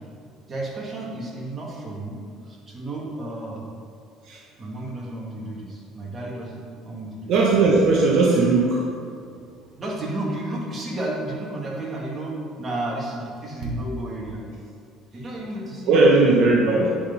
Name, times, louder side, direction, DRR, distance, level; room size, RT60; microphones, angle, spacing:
voice 1, 0.4-2.2 2.5-3.7 4.6-7.3 9.8-14.4 15.1-16.1, right 1 dB, 30° right, -3 dB, 2.2 m, -32 dB
voice 2, 7.3-8.9 13.6-13.7 15.9-16.9, right 3 dB, 70° right, -2 dB, 1.0 m, -18 dB
9.9 x 4.4 x 5.6 m, 2.4 s
supercardioid pair, 95°, 0 cm